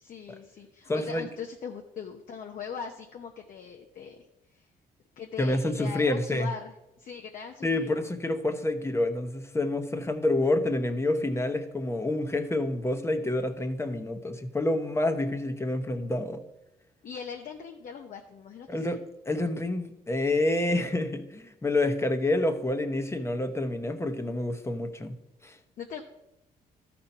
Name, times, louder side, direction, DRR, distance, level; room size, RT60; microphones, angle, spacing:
voice 1, 0.0-4.3 4.5-4.7 5.2-7.9 17.0-19.0 25.8-26.0, left 6 dB, 60° left, 2 dB, 0.9 m, -40 dB
voice 2, 0.9-1.3 5.4-6.5 7.6-16.4 18.7-19.0 19.3-25.2 25.4-25.6, left 2 dB, 15° left, 7 dB, 0.9 m, -28 dB
13.0 x 4.4 x 5.5 m, 0.91 s
cardioid pair, 90°, 16 cm